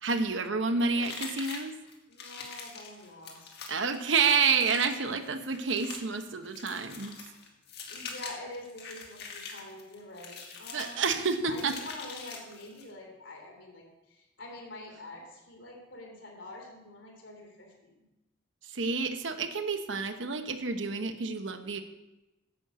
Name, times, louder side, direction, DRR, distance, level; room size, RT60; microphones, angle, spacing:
voice 1, 0.0-1.7 3.7-7.2 10.7-11.8 18.6-21.8, right 5 dB, 85° right, 8 dB, 1.0 m, -29 dB
voice 2, 0.5-1.0 2.1-3.8 7.9-17.9, left 2 dB, 90° left, 1 dB, 3.3 m, -46 dB
sound 1, 1.0-12.9, left 5 dB, 60° left, 1.9 m, -44 dB
10.5 x 6.4 x 7.5 m, 0.99 s
head